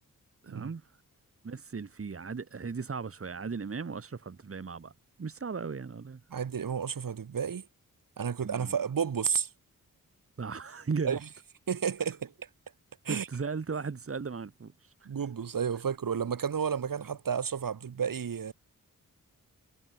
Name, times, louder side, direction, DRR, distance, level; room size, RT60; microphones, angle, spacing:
voice 1, 0.4-0.8 1.4-4.9 5.2-6.2 8.4-8.7 10.4-11.2 13.1-14.7, right 5 dB, 40° right, 2.9 m, -36 dB
voice 2, 6.3-7.7 8.2-9.5 11.0-11.2 11.7-12.3 13.1-13.3 15.1-18.5, right 7 dB, 70° right, 3.6 m, -31 dB
wide cardioid pair, 160°, 34 cm